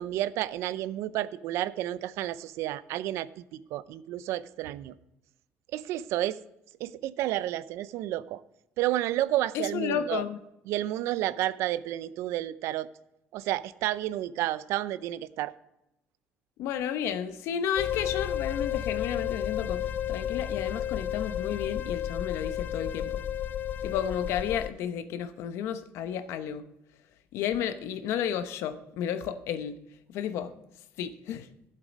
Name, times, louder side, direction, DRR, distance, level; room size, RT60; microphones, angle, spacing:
voice 1, 0.0-5.0 5.7-6.4 6.8-8.4 8.8-10.2 10.7-12.9 13.3-15.5, right 14 dB, 75° right, 16 dB, 0.5 m, -31 dB
voice 2, 9.5-10.4 16.6-23.1 23.8-26.6 27.3-29.8 30.1-30.5 31.0-31.5, left 9 dB, 70° left, 11 dB, 0.9 m, -32 dB
sound 1, 17.8-24.7, left 10 dB, 40° left, 0.4 m, -32 dB
12.5 x 7.5 x 5.2 m, 0.87 s
cardioid pair, 150°, 5 cm